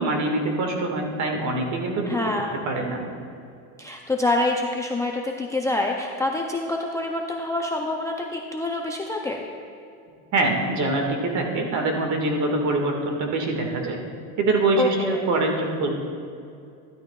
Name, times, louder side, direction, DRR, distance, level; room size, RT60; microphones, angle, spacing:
voice 1, 0.0-2.1 2.7-3.0 10.3-14.0 14.4-15.9, right 2 dB, 45° right, 2 dB, 1.8 m, -24 dB
voice 2, 2.1-2.7 3.8-9.4 14.8-15.3, left 2 dB, 10° left, 1 dB, 0.4 m, -26 dB
13.0 x 12.0 x 2.3 m, 2.5 s
cardioid pair, 130°, 39 cm